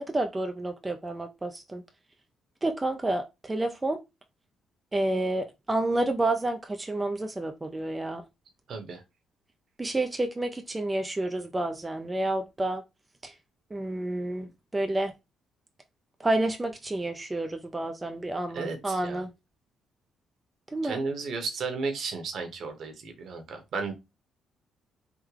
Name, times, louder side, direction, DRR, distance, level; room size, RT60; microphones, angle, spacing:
voice 1, 0.0-1.8 2.6-4.0 4.9-8.2 9.8-12.8 13.2-13.3 13.7-15.1 16.2-19.3 20.7-21.0, right 2 dB, 20° right, 0.4 m, -29 dB
voice 2, 8.7-9.0 18.5-19.2 20.8-23.9, right 4 dB, 65° right, 0.9 m, -34 dB
3.6 x 2.1 x 3.2 m
cardioid pair, 90°, 0 cm